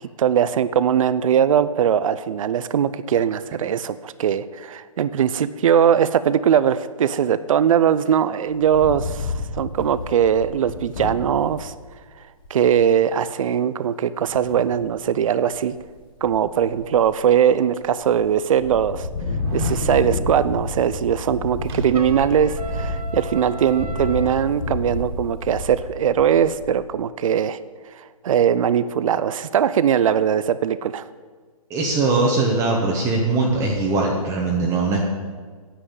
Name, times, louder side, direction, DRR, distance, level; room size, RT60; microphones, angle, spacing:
voice 1, 0.2-11.7 12.5-15.7 16.2-19.1 19.5-27.6 27.9-31.1, right 8 dB, 65° right, 15 dB, 0.6 m, -20 dB
Wind, 8.5-11.6 12.1-12.2 12.4-12.8 14.3-14.9 15.4-15.9 16.2-17.4 17.8-18.3 18.6-26.8, left 3 dB, 35° left, 1.8 m, -30 dB
sound 1, 19.3-19.9 21.7-22.4 22.7-22.8, right 1 dB, 40° right, 2.1 m, -32 dB
Trumpet, 21.9-24.5, right 4 dB, 85° right, 1.4 m, -36 dB
voice 2, 31.7-35.0, right 3 dB, 15° right, -2 dB, 1.3 m, -21 dB
10.0 x 7.7 x 8.5 m, 1.5 s
hypercardioid pair, 150°, 19 cm